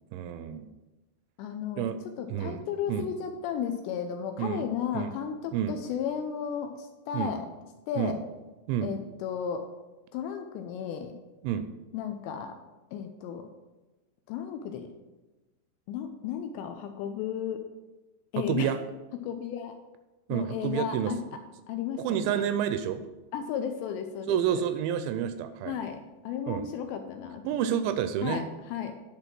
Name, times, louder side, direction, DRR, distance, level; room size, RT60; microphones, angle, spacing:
voice 1, 0.1-0.7 1.8-2.0 2.3-2.6 2.9-3.1 4.4-4.7 4.9-5.1 5.5-5.8 7.1-7.3 8.0-8.2 8.7-8.9 11.4-11.7 18.4-18.8 20.3-21.1 22.0-23.0 24.3-25.8 26.5-26.7 27.4-28.4, right 9 dB, 85° right, 9 dB, 2.7 m, -29 dB
voice 2, 1.4-1.9 2.2-7.5 7.9-8.2 8.8-9.6 10.1-11.1 11.9-12.5 12.9-13.5 14.3-14.9 15.9-17.6 18.3-18.8 19.2-19.7 20.3-21.2 21.7-22.5 23.3-24.7 25.7-27.6 28.2-28.9, left 8 dB, 80° left, 6 dB, 2.6 m, -34 dB
10.5 x 4.0 x 6.0 m, 1.1 s
omnidirectional pair, 5.4 m